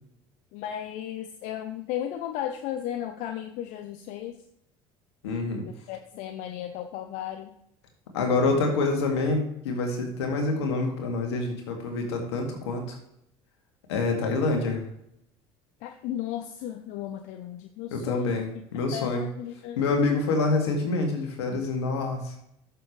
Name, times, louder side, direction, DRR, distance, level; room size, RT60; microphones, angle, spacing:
voice 1, 0.5-4.4 5.9-7.6 15.8-18.5 18.9-19.9, left 11 dB, 65° left, 7 dB, 0.7 m, -35 dB
voice 2, 5.2-5.6 8.1-13.0 13.9-14.9 17.9-19.2 19.8-22.3, left 3 dB, 85° left, 2 dB, 2.2 m, -26 dB
13.5 x 6.8 x 3.3 m, 0.77 s
hypercardioid pair, 75°, 14 cm